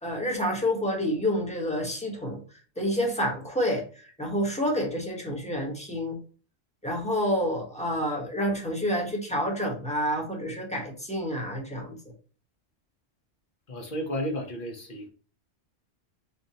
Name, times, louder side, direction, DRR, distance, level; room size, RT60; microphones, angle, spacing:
voice 1, 0.0-2.4 2.8-3.9 4.2-6.2 6.8-12.0, equal, 5° left, 0 dB, 1.0 m, -28 dB
voice 2, 13.7-15.1, equal, 50° left, 2 dB, 1.1 m, -33 dB
3.9 x 3.5 x 2.8 m, 0.39 s
omnidirectional pair, 1.1 m